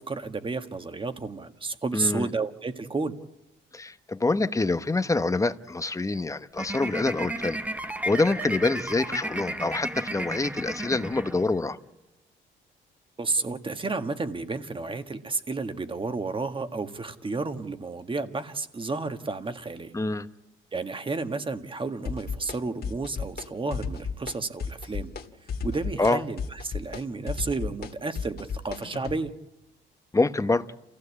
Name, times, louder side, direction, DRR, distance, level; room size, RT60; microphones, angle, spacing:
voice 1, 0.0-3.1 13.2-19.9 20.7-25.1 25.6-29.3, right 3 dB, 25° right, 8 dB, 1.7 m, -31 dB
voice 2, 1.9-2.3 3.7-7.6 8.0-11.8 19.9-20.3 26.0-26.2 30.1-30.6, left 3 dB, 15° left, 11 dB, 1.0 m, -26 dB
sound 1, 6.5-11.8, right 1 dB, 5° right, 1.2 m, -33 dB
sound 2, 22.0-22.6 22.8-23.5 23.7-24.3 24.6-25.2 25.5-29.2, left 5 dB, 50° left, 2.1 m, -33 dB
28.0 x 15.5 x 8.5 m, 0.97 s
cardioid pair, 90°, 20 cm